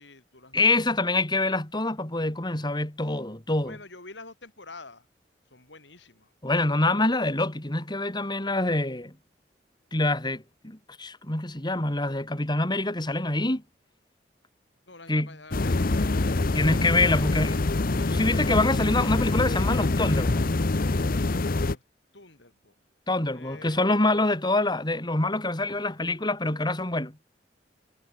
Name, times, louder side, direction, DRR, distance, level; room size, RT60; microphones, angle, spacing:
voice 1, 0.0-0.7 3.6-5.1 5.5-6.3 14.9-16.5 21.6-21.8 22.1-22.7 23.3-23.8, left 3 dB, 75° left, 7.1 m, -47 dB
voice 2, 0.5-3.8 6.4-9.1 9.9-13.6 15.1-15.3 16.5-17.6 18.0-20.4 23.1-27.2, left 2 dB, 25° left, 3.0 m, -26 dB
sound 1, 15.5-21.8, left 2 dB, 50° left, 0.8 m, -25 dB
head